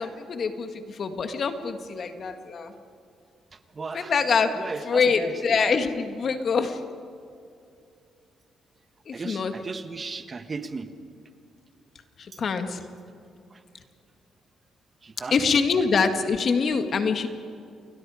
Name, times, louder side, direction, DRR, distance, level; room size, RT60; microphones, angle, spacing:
voice 1, 0.0-2.7 3.9-4.5 4.9-6.8 9.1-9.5 12.2-12.8 15.3-17.3, left 5 dB, 50° left, 7 dB, 1.9 m, -25 dB
voice 2, 3.5-4.1 4.4-5.6 9.1-10.9 12.3-12.5 13.5-13.6 15.0-15.4, right 4 dB, 35° right, 9 dB, 1.3 m, -36 dB
28.5 x 21.5 x 5.0 m, 2.6 s
cardioid pair, 90°, 0 cm